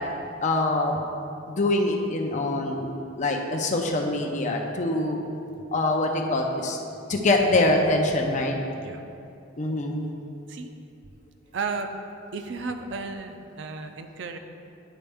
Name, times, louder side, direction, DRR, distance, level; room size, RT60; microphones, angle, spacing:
voice 1, 0.4-1.0 1.5-2.9 3.2-5.2 5.7-6.8 7.1-8.6 9.6-10.1, left 2 dB, 35° left, 2 dB, 0.6 m, -24 dB
voice 2, 11.5-11.9 12.3-14.4, right 4 dB, 60° right, 6 dB, 0.4 m, -33 dB
9.9 x 4.3 x 3.5 m, 2.6 s
head